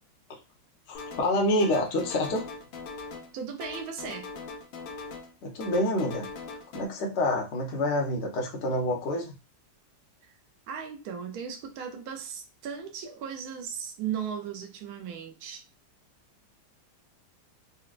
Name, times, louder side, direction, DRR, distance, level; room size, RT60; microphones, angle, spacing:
sound 1, 0.9-1.3 1.6-3.3 3.6-5.3 5.6-6.8, left 4 dB, 75° left, 1.4 m, -41 dB
voice 1, 0.9-2.4 5.4-6.3 6.7-9.3, left 1 dB, 60° left, 0.7 m, -27 dB
voice 2, 3.3-4.3 10.2-10.3 10.7-15.6, right 7 dB, 70° right, 0.9 m, -37 dB
4.3 x 2.1 x 2.4 m
omnidirectional pair, 2.3 m